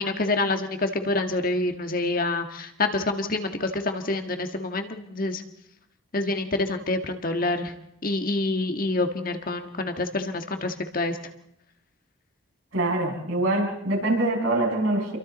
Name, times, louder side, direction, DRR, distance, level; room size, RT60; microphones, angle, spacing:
voice 1, 0.0-5.4 6.1-7.7 8.0-11.2, left 2 dB, 45° left, 6 dB, 1.5 m, -27 dB
voice 2, 12.7-15.2, right 2 dB, 90° right, -1 dB, 7.1 m, -24 dB
28.5 x 23.5 x 4.2 m, 0.78 s
head